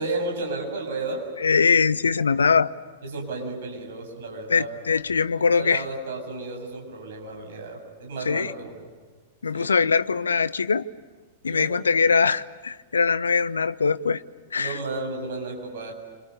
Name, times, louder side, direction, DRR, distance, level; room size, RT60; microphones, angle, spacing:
voice 1, 0.0-1.3 3.0-4.8 5.5-8.9 9.5-9.7 11.5-11.8 14.6-15.9, right 2 dB, 55° right, 7.7 m, -33 dB
voice 2, 1.4-2.7 4.5-5.8 8.3-8.5 9.4-10.9 11.4-14.2 14.5-14.8, left 5 dB, 70° left, 0.8 m, -22 dB
28.5 x 26.5 x 6.8 m
figure-of-eight pair, 100°, 0 cm